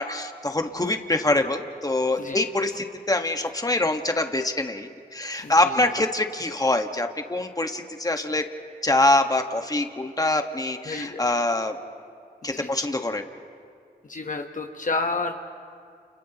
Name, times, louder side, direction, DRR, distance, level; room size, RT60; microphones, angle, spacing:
voice 1, 0.0-8.4 8.8-11.8 12.4-13.2, left 2 dB, 20° left, 5 dB, 1.5 m, -24 dB
voice 2, 2.1-2.4 5.3-5.9 10.8-11.2 12.5-12.9 14.0-15.3, left 3 dB, 50° left, 4 dB, 1.2 m, -31 dB
29.5 x 29.5 x 3.0 m, 2.3 s
cardioid pair, 50°, 18 cm